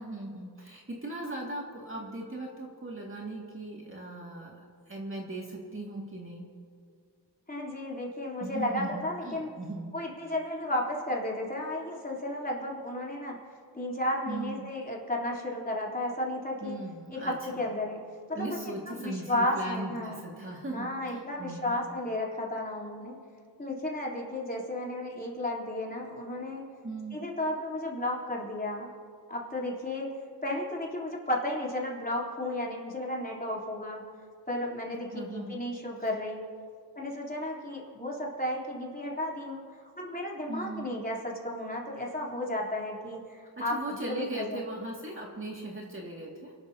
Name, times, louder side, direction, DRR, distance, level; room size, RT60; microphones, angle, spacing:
voice 1, 0.0-6.5 8.4-9.9 14.3-14.6 16.6-17.6 18.3-21.8 26.8-27.2 34.9-35.6 40.5-40.9 43.7-46.5, right 2 dB, 30° right, -2 dB, 2.3 m, -38 dB
voice 2, 7.5-9.5 9.9-13.4 13.7-16.8 17.1-18.0 18.3-20.2 20.7-23.2 23.6-26.6 27.1-28.9 29.3-30.1 30.4-34.0 34.5-36.4 37.0-39.6 40.0-44.6, left 1 dB, 20° left, -4 dB, 3.6 m, -33 dB
29.0 x 12.0 x 2.9 m, 2.2 s
cardioid pair, 70°, 42 cm